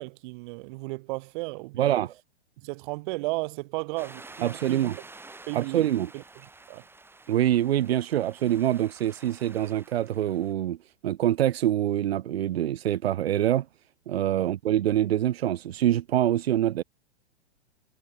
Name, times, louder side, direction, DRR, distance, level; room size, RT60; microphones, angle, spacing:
voice 1, 0.0-2.0 2.6-4.9 5.5-5.9 6.1-6.2 6.7-6.8 14.4-14.5, right 24 dB, 45° right, 3.9 m, -34 dB
voice 2, 1.7-2.1 4.4-5.0 5.5-6.1 7.3-10.8 11.0-13.7 14.1-16.8, right 12 dB, 60° right, 2.7 m, -25 dB
sound 1, 4.0-10.5, right 3 dB, 5° right, 6.3 m, -49 dB
hypercardioid pair, 115°, 35 cm